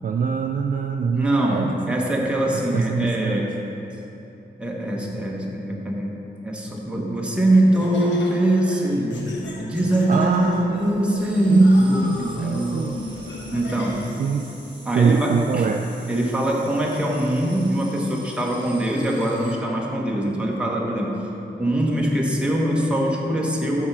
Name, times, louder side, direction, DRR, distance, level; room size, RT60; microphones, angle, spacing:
voice 1, 0.0-2.0 2.5-3.4 10.1-10.8 11.5-13.0 14.2-14.5 14.9-15.8, right 5 dB, 50° right, 4 dB, 0.4 m, -24 dB
voice 2, 1.1-3.5 4.6-9.3 9.6-12.8 13.5-14.1 14.8-15.8 16.1-21.2 21.6-23.9, right 1 dB, 5° right, -2 dB, 1.2 m, -22 dB
Laughter, 7.4-14.3, left 2 dB, 90° left, 1.1 m, -39 dB
sound 1, 9.1-14.1, left 2 dB, 60° left, 0.9 m, -40 dB
sound 2, 11.2-19.5, right 1 dB, 25° right, 1.3 m, -46 dB
7.3 x 5.8 x 6.0 m, 3.0 s
wide cardioid pair, 120°, 18 cm